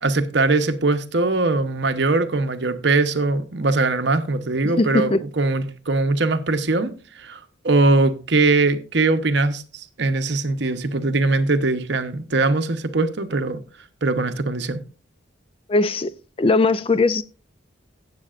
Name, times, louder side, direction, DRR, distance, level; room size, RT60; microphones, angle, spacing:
voice 1, 0.0-7.4 7.6-13.6 14.0-14.8, right 3 dB, 60° right, 0.9 m, -21 dB
voice 2, 4.6-5.2 15.7-17.2, left 3 dB, 25° left, 0.4 m, -20 dB
17.5 x 7.7 x 2.5 m
head